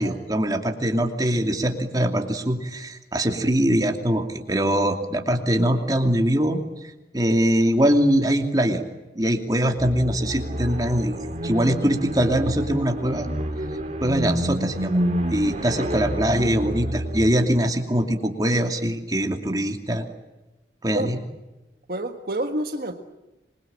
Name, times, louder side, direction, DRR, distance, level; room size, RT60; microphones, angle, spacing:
voice 1, 0.0-8.8 9.1-13.3 14.0-15.0 15.3-20.1 20.8-21.2, equal, 20° right, 4 dB, 2.7 m, -22 dB
sound 1, 9.8-17.4, equal, 40° right, 3.4 m, -28 dB
voice 2, 21.9-23.0, right 1 dB, 55° right, 6 dB, 1.6 m, -28 dB
26.5 x 22.5 x 8.8 m, 1.1 s
head